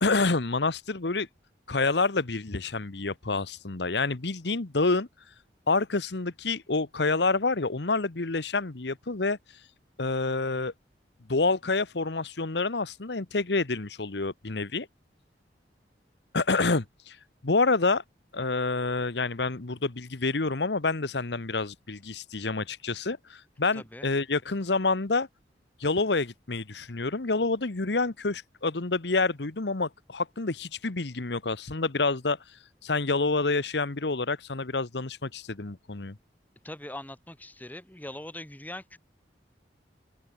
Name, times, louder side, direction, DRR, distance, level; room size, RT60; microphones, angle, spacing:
voice 1, 0.0-1.3 1.7-5.1 5.7-9.4 10.0-10.7 11.3-14.9 16.3-17.2 17.4-18.0 18.3-25.3 25.8-32.4 32.8-36.2, left 3 dB, 75° left, 1.2 m, -28 dB
voice 2, 23.7-24.1 36.6-39.0, left 1 dB, 10° left, 1.6 m, -41 dB
open air
head